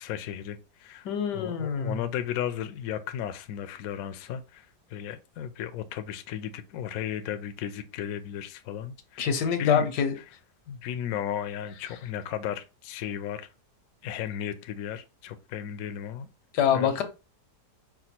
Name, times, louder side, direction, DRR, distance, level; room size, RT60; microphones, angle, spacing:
voice 1, 0.0-1.1 1.3-9.3 9.6-9.9 10.7-13.5 14.0-16.3 16.7-16.9, left 10 dB, 70° left, 0.9 m, -34 dB
voice 2, 1.0-2.0 9.2-10.2 16.5-17.0, left 7 dB, 85° left, 1.4 m, -25 dB
4.9 x 2.2 x 4.3 m
omnidirectional pair, 1.7 m